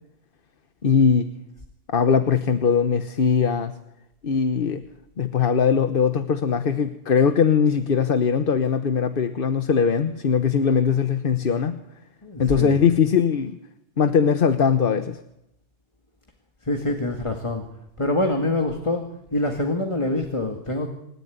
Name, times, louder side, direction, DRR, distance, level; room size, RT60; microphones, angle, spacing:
voice 1, 0.8-1.3 1.9-3.8 4.2-4.8 5.2-11.8 12.4-13.6 14.0-15.2, left 6 dB, 50° left, 10 dB, 1.1 m, -20 dB
voice 2, 12.2-12.8 16.6-17.7 18.0-20.9, left 2 dB, 25° left, 4 dB, 2.1 m, -25 dB
26.5 x 13.5 x 9.4 m, 0.85 s
omnidirectional pair, 1.3 m